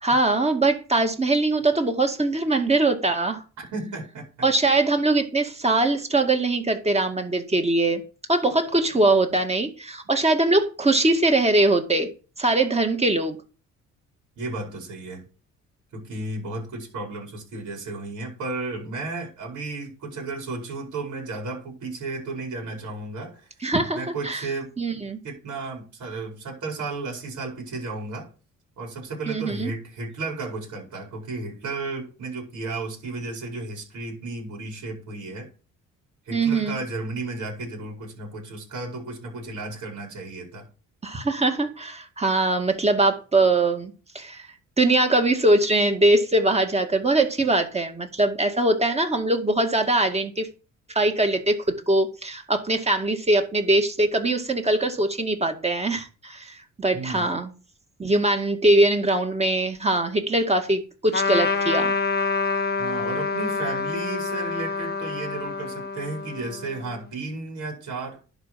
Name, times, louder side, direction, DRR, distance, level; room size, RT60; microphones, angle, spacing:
voice 1, 0.0-3.4 4.4-8.0 8.3-12.1 12.4-13.4 23.6-24.5 24.8-25.2 29.3-29.7 36.3-36.8 41.0-44.5 44.8-50.5 51.0-51.6 51.9-57.5 58.0-61.9, right 2 dB, 20° right, 2.0 m, -22 dB
voice 2, 3.6-4.5 14.4-15.2 15.9-23.5 23.9-24.7 25.2-28.3 28.8-35.5 36.2-40.7 56.9-57.3 62.8-68.3, right 3 dB, 75° right, 4.7 m, -33 dB
Trumpet, 61.1-67.0, left 4 dB, 35° left, 1.1 m, -27 dB
11.0 x 5.1 x 5.8 m
cardioid pair, 90°, 30 cm